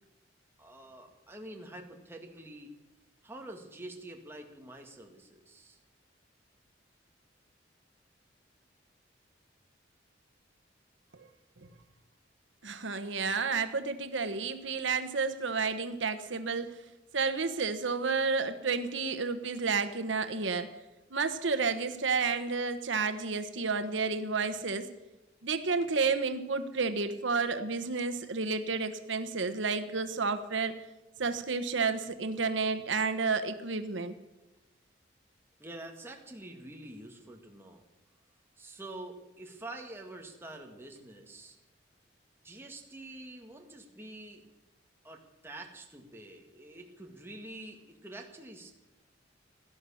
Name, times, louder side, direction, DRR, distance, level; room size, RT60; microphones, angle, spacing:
voice 1, 0.6-2.7 3.2-5.8 35.6-37.8 38.6-41.6 42.4-44.4 45.0-48.7, right 1 dB, 10° right, 1 dB, 1.8 m, -47 dB
voice 2, 12.6-16.7 17.1-20.7 21.1-24.9 25.4-30.8 31.2-34.1, right 4 dB, 80° right, 9 dB, 1.1 m, -31 dB
16.5 x 11.5 x 7.0 m, 1.0 s
head